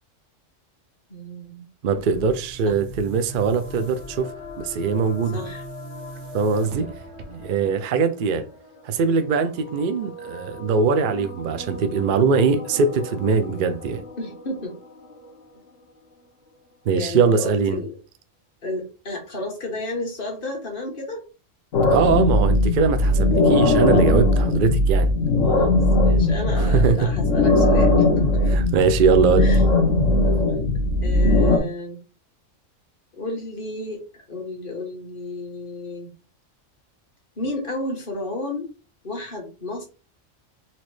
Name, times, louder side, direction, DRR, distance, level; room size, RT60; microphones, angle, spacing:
voice 1, 1.1-1.7 2.6-2.8 5.3-5.6 6.6-6.9 14.2-14.8 16.9-18.0 18.6-21.2 25.4-28.6 29.4-29.7 30.0-30.5 31.0-32.0 33.1-34.0 34.3-36.1 37.4-38.7 39.0-39.9, left 2 dB, 45° left, 1.5 m, -32 dB
voice 2, 1.8-4.3 4.6-5.4 6.3-6.9 7.3-8.4 8.8-14.0 16.9-17.8 21.9-25.1 26.7-27.0 28.5-29.5, right 5 dB, 60° right, 0.5 m, -21 dB
Boom, 1.9-7.7, right 3 dB, 85° right, 1.2 m, -41 dB
sound 1, 2.6-16.7, left 2 dB, 25° left, 2.4 m, -41 dB
sound 2, 21.7-31.6, left 2 dB, 75° left, 1.2 m, -19 dB
4.2 x 3.0 x 3.1 m
omnidirectional pair, 1.3 m